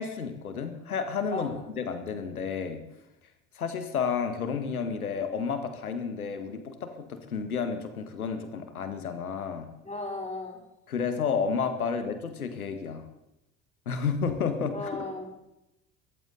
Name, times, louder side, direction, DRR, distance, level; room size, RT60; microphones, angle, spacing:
voice 1, 0.0-2.8 3.6-9.7 10.9-13.1 13.9-14.8, left 6 dB, 80° left, 8 dB, 1.8 m, -31 dB
voice 2, 9.8-10.6 14.7-15.5, left 2 dB, 15° left, 1 dB, 4.4 m, -36 dB
19.5 x 14.5 x 4.0 m, 0.90 s
figure-of-eight pair, 65°, 43 cm